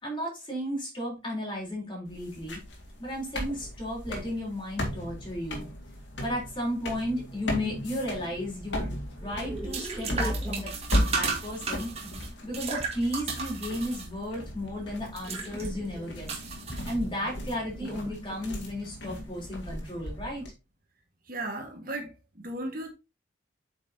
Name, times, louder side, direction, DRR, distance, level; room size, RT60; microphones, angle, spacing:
voice 1, 0.0-2.6 3.0-5.7 6.2-10.7 11.1-11.9 12.4-16.3 16.8-20.5, equal, 25° left, 3.9 m, -34 dB
sound 1, 2.1-20.5, left 1 dB, 70° left, 2.4 m, -36 dB
sound 2, 2.4-2.5 3.0-3.2 3.8-3.9 4.8-5.5 6.9-7.0 7.3-7.7 9.2-20.4, equal, 10° right, 1.0 m, -44 dB
sound 3, 8.5-17.4, right 4 dB, 35° right, 1.9 m, -36 dB
voice 2, 21.3-22.9, right 1 dB, 50° right, 1.8 m, -36 dB
8.4 x 5.9 x 2.8 m
head